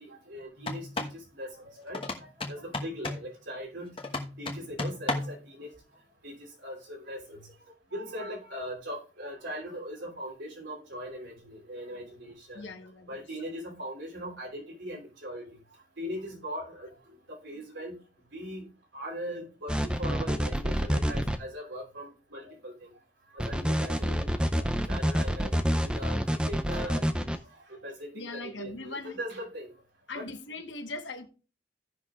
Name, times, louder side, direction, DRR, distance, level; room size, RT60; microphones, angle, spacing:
voice 1, 0.0-4.0 4.4-5.7 6.2-7.5 7.9-12.7 13.1-15.5 16.0-16.9 17.3-18.0 18.3-22.9 23.3-29.7 30.1-30.2, equal, 85° right, 0 dB, 3.2 m, -40 dB
sound 1, 0.6-1.2 1.9-3.3 4.0-5.4, left 2 dB, 30° left, 1.2 m, -34 dB
voice 2, 12.5-13.2 28.1-29.2 30.1-31.3, left 3 dB, 85° left, 6 dB, 1.3 m, -40 dB
sound 2, 19.7-21.4 23.4-27.4, equal, 5° right, 0.5 m, -27 dB
16.5 x 5.9 x 2.4 m, 0.34 s
head